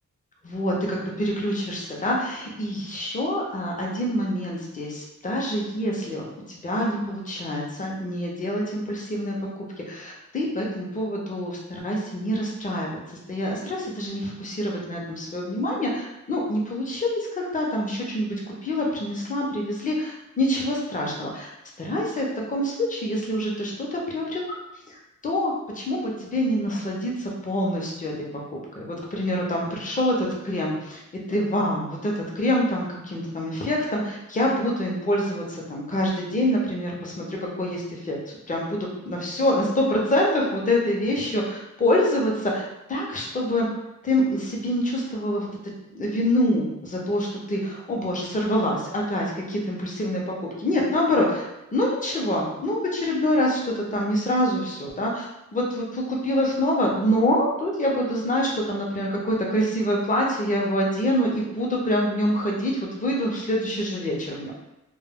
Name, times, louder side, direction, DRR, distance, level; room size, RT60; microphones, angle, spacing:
voice 1, 0.4-9.4 9.9-13.0 13.3-18.3 18.6-21.5 21.8-24.6 24.9-28.1 28.5-31.0 31.3-43.7 44.0-45.5 45.9-50.2 50.6-64.5, left 1 dB, 25° left, -2 dB, 0.5 m, -26 dB
2.2 x 2.0 x 3.4 m, 0.93 s
wide cardioid pair, 140°, 31 cm